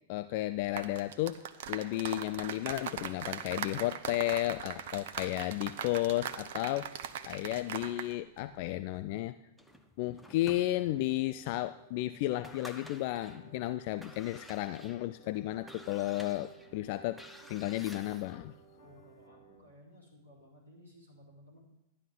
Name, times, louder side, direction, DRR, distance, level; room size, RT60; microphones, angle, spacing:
voice 1, 0.1-1.4 1.7-6.9 7.2-9.3 10.0-17.2 17.5-18.5, left 16 dB, 45° left, 12 dB, 0.3 m, -33 dB
sound 1, 0.6-8.1 8.4-8.6, right 9 dB, 55° right, 0.7 m, -40 dB
sound 2, 5.6-19.6, right 4 dB, 65° left, 3.2 m, -60 dB
sound 3, 9.6-11.2 11.7-11.8 12.2-13.4 13.9-18.5, equal, ahead, 0.9 m, -52 dB
voice 2, 18.8-21.6, equal, 90° left, -5 dB, 3.9 m, -57 dB
12.0 x 10.5 x 3.7 m, 0.88 s
figure-of-eight pair, 95°, 0 cm